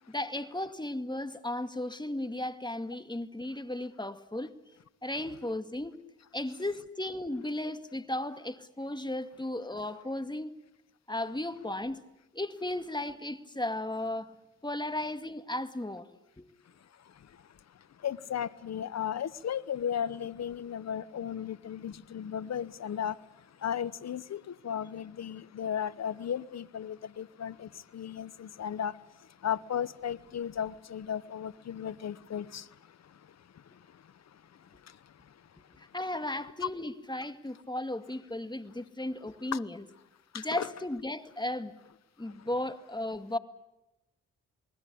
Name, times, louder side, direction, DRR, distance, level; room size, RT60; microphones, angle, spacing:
voice 1, 0.1-4.5 5.0-5.9 6.3-10.5 11.1-12.0 12.3-16.1 16.4-16.5 35.7-39.8 40.3-41.7 42.2-43.4, left 1 dB, 15° left, 2.2 m, -35 dB
voice 2, 18.0-23.2 23.6-28.9 29.4-32.6 39.5-39.6 40.3-40.7, left 9 dB, 60° left, 1.0 m, -35 dB
28.5 x 20.5 x 8.6 m
supercardioid pair, 45°, 30 cm